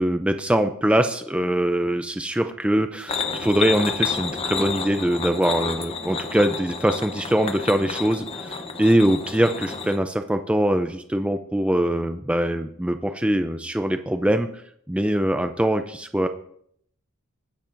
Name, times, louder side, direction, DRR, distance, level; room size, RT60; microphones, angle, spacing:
voice 1, 0.0-14.5 14.9-16.3, right 1 dB, 5° right, 7 dB, 0.4 m, -23 dB
sound 1, 3.1-10.0, left 5 dB, 25° left, 0.8 m, -30 dB
20.0 x 10.0 x 2.6 m, 0.68 s
head